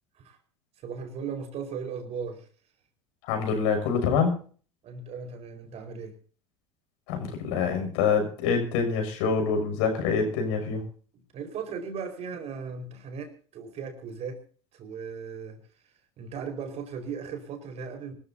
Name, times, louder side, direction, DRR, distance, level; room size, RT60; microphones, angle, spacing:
voice 1, 0.8-2.5 4.8-6.1 11.3-14.4 14.7-15.6 16.2-18.1, right 6 dB, 45° right, 6 dB, 4.8 m, -37 dB
voice 2, 3.2-4.4 7.1-10.8, left 5 dB, 65° left, 5 dB, 6.4 m, -26 dB
24.5 x 14.0 x 2.8 m, 0.42 s
hypercardioid pair, 80°, 15 cm